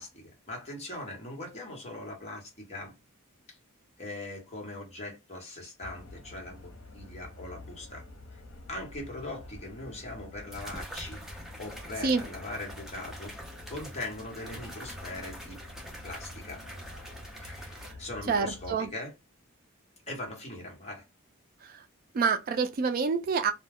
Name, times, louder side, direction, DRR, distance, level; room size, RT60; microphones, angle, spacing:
voice 1, 0.0-2.9 3.5-3.6 4.0-8.0 8.7-13.3 13.7-15.6 16.0-16.6 17.4-19.1 20.1-21.0, left 2 dB, 30° left, 1.1 m, -41 dB
sound 1, 5.8-18.8, left 2 dB, 85° left, 0.8 m, -48 dB
sound 2, 9.5-9.6 10.5-17.9, equal, ahead, 0.6 m, -45 dB
voice 2, 18.3-18.9 21.6-21.8 22.1-23.5, right 5 dB, 40° right, 0.3 m, -27 dB
2.3 x 2.1 x 3.3 m
head